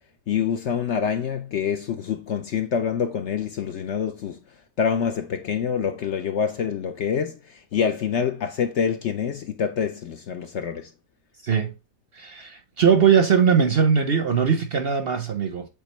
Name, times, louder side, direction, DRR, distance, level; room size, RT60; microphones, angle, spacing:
voice 1, 0.3-4.4 4.8-10.9, left 7 dB, 65° left, 0.7 m, -26 dB
voice 2, 11.4-11.7 12.1-15.7, right 7 dB, 50° right, 0.7 m, -20 dB
8.2 x 3.7 x 3.1 m
omnidirectional pair, 1.6 m